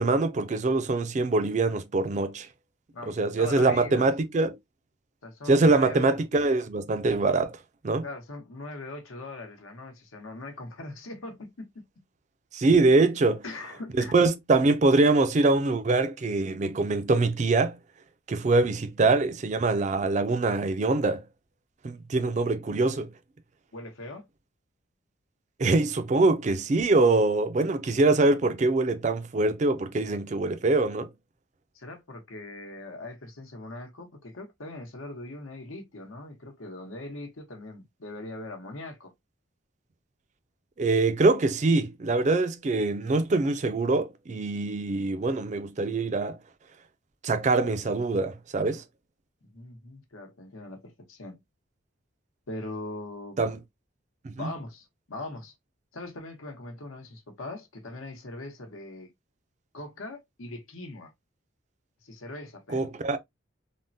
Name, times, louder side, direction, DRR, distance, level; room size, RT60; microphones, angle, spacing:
voice 1, 0.0-2.5 3.1-4.6 5.5-7.6 7.8-8.0 12.5-13.4 14.1-17.8 18.3-21.2 21.8-23.1 25.6-31.1 40.8-46.4 47.2-48.8 53.4-53.6 54.2-54.5 62.7-63.2, right 3 dB, 35° right, 0.3 m, -24 dB
voice 2, 2.9-4.1 5.2-6.2 8.0-11.7 13.4-14.1 23.7-24.3 31.7-39.1 49.5-51.4 52.5-53.4 54.4-55.5 55.9-59.1 59.7-61.1 62.0-62.9, left 2 dB, 90° left, 1.0 m, -41 dB
3.5 x 2.1 x 2.6 m
head